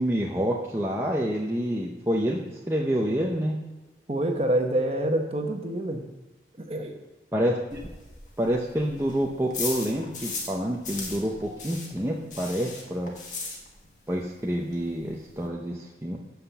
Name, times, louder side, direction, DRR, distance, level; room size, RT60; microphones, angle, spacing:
voice 1, 0.0-3.6 7.3-7.9 8.4-13.1 14.1-16.2, equal, 15° right, -2 dB, 0.7 m, -28 dB
voice 2, 4.1-6.0 6.7-6.9, right 1 dB, 35° right, 4 dB, 1.1 m, -26 dB
sound 1, 7.7-10.6 10.8-14.0 14.3-14.4 14.7-14.8 15.0-15.5, left 4 dB, 45° left, 1.7 m, -37 dB
8.0 x 5.9 x 6.8 m, 1.1 s
head